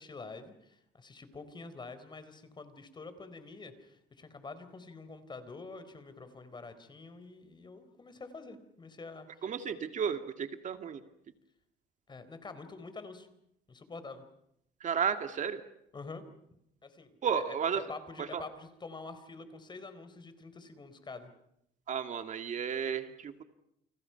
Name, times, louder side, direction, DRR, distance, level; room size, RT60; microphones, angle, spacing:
voice 1, 0.0-9.4 12.1-13.3 13.7-14.2 15.9-16.2 16.8-17.6 17.9-21.3, left 3 dB, 25° left, 11 dB, 4.0 m, -47 dB
voice 2, 9.4-11.0 14.8-15.6 17.2-17.8 18.2-18.4 21.9-23.4, right 7 dB, 45° right, 8 dB, 2.1 m, -33 dB
30.0 x 27.5 x 5.8 m, 0.77 s
cardioid pair, 110°, 17 cm